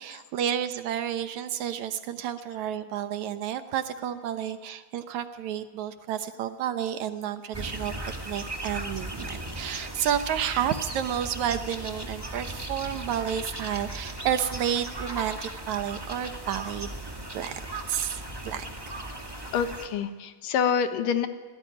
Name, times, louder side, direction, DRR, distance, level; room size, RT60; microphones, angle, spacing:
voice 1, 0.0-16.9 17.3-17.6 17.9-18.7, right 10 dB, 70° right, 10 dB, 2.0 m, -31 dB
sound 1, 7.5-19.9, right 1 dB, 15° right, 1.0 m, -37 dB
voice 2, 19.5-21.3, left 7 dB, 75° left, 9 dB, 2.9 m, -26 dB
25.5 x 17.5 x 9.9 m, 1.3 s
omnidirectional pair, 4.1 m